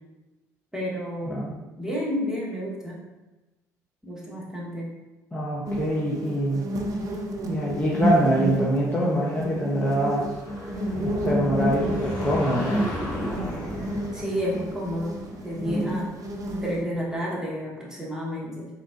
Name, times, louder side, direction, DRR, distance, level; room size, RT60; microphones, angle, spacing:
voice 1, 0.7-1.5 1.8-3.0 4.0-4.9 14.1-16.1 16.6-18.7, equal, 5° right, -4 dB, 1.1 m, -31 dB
voice 2, 1.3-1.6 5.3-6.7 7.4-10.3 11.0-12.9 15.6-15.9, right 1 dB, 15° left, -6 dB, 0.8 m, -25 dB
sound 1, 5.6-16.8, equal, 40° right, 0.5 m, -30 dB
sound 2, 10.3-16.7, left 1 dB, 45° left, 1.1 m, -36 dB
3.7 x 2.8 x 2.5 m, 1.1 s
hypercardioid pair, 55°, 9 cm